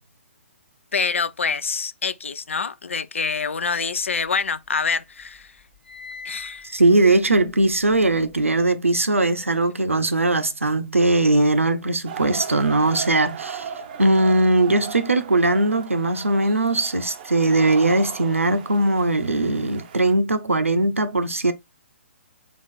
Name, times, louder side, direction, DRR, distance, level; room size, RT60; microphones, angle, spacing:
voice 1, 0.9-5.5 6.2-6.6, left 5 dB, 75° left, 0.4 m, -26 dB
sound 1, 3.8-4.9 5.2-8.6, left 4 dB, 5° left, 0.8 m, -43 dB
voice 2, 6.7-13.7 14.0-21.5, right 2 dB, 90° right, 0.6 m, -20 dB
sound 2, 12.0-20.1, right 7 dB, 40° right, 0.5 m, -37 dB
3.7 x 2.4 x 3.5 m
figure-of-eight pair, 130°, 7 cm